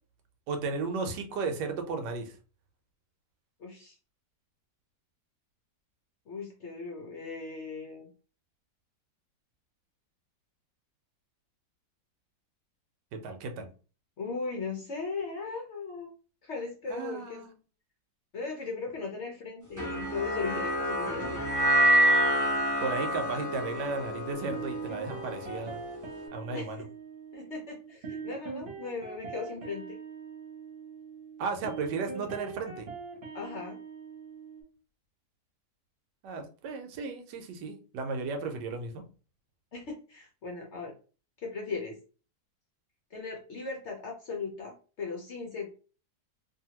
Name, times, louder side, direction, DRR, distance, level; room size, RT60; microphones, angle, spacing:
voice 1, 0.5-2.3 13.1-13.7 16.9-17.5 22.8-25.8 26.3-26.8 31.4-32.9 36.2-39.0, right 4 dB, 80° right, 5 dB, 1.3 m, -34 dB
voice 2, 3.6-4.0 6.3-8.1 14.2-16.1 16.4-17.4 18.3-21.7 26.5-26.7 27.3-30.0 33.3-33.8 39.7-40.9 41.4-41.9 43.1-45.7, left 4 dB, 60° left, 0 dB, 0.7 m, -38 dB
sound 1, 19.8-26.1, right 1 dB, 20° right, 0.5 m, -27 dB
sound 2, 24.3-34.6, right 5 dB, 45° right, 0.9 m, -42 dB
2.7 x 2.6 x 2.8 m, 0.36 s
omnidirectional pair, 1.9 m